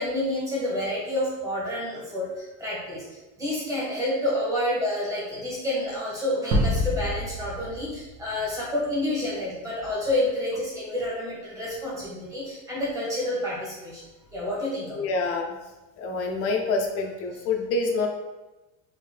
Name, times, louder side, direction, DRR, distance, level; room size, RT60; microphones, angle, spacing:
voice 1, 0.0-3.0 3.4-14.0 14.3-15.0, left 1 dB, 10° right, -7 dB, 1.1 m, -29 dB
sound 1, 6.5-8.9, equal, 55° right, 1.0 m, -27 dB
voice 2, 15.0-15.5 16.0-18.1, left 3 dB, 35° left, 2 dB, 0.5 m, -26 dB
3.7 x 3.1 x 3.2 m, 1.1 s
cardioid pair, 180°, 40 cm